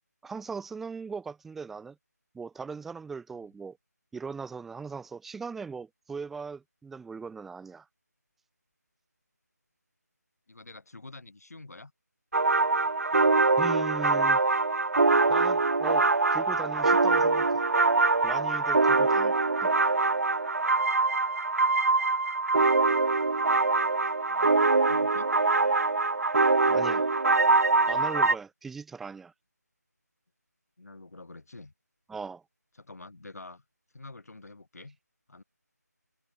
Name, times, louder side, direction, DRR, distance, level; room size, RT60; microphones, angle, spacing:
voice 1, 0.2-2.0 2.3-3.8 4.1-7.8 13.6-14.4 15.3-17.6 18.2-19.4 19.6-19.7 26.7-27.1 27.9-29.3 32.1-32.4, right 5 dB, ahead, 1.2 m, -39 dB
voice 2, 10.5-11.9 24.3-25.3 30.8-31.7 32.8-33.6 33.9-35.0 35.3-35.4, left 2 dB, 60° left, 4.8 m, -47 dB
sound 1, 12.3-28.3, right 3 dB, 55° right, 0.8 m, -23 dB
figure-of-eight pair, 165°, 9 cm